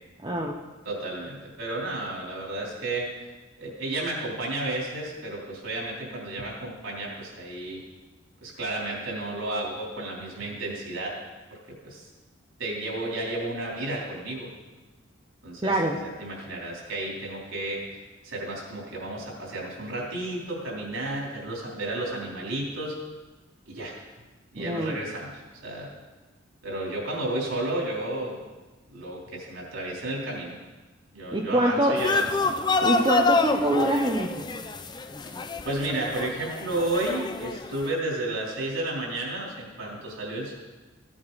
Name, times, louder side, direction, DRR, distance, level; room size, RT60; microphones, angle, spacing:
voice 1, 0.2-0.6 15.6-16.0 24.6-25.0 31.3-32.0 32.8-34.4, right 1 dB, 25° right, 0 dB, 0.7 m, -24 dB
voice 2, 0.8-3.1 3.6-7.8 8.4-11.2 11.8-12.1 12.6-14.5 15.4-17.8 18.2-23.0 23.7-23.9 24.5-25.9 26.6-28.4 28.9-30.6 31.1-32.3 35.3-35.4 35.6-40.5, right 2 dB, 85° right, -3 dB, 3.6 m, -32 dB
sound 1, 32.0-37.9, left 3 dB, 20° left, 0.5 m, -27 dB
16.0 x 8.7 x 4.1 m, 1.2 s
head